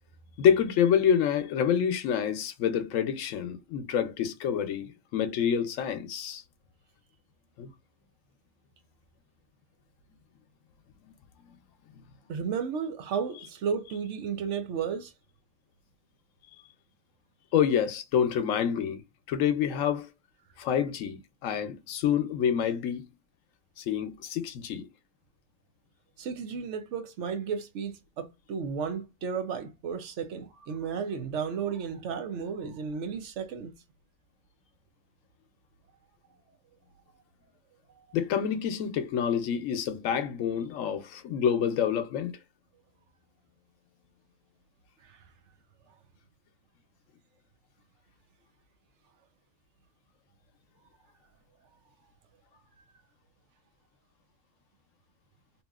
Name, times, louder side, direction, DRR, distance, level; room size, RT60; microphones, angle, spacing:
voice 1, 0.4-6.4 7.6-7.7 17.5-19.0 19.3-20.1 20.6-23.0 23.8-24.9 38.1-42.3, left 8 dB, 85° left, 1.0 m, -27 dB
voice 2, 12.3-15.1 26.2-33.7 45.1-45.2, right 6 dB, 70° right, 0.9 m, -33 dB
2.8 x 2.7 x 2.3 m
omnidirectional pair, 1.3 m